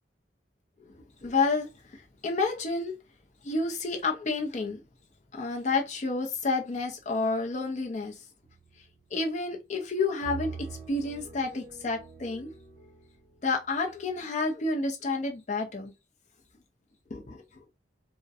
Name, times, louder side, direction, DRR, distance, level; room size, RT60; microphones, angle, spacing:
voice 1, 0.9-2.9 3.4-4.8 5.3-8.1 9.1-12.5 13.4-15.9 17.1-17.4, left 3 dB, 40° left, 0.5 m, -30 dB
sound 1, 8.4-9.3 10.2-14.2, right 5 dB, 50° right, 1.1 m, -45 dB
2.6 x 2.1 x 2.3 m
head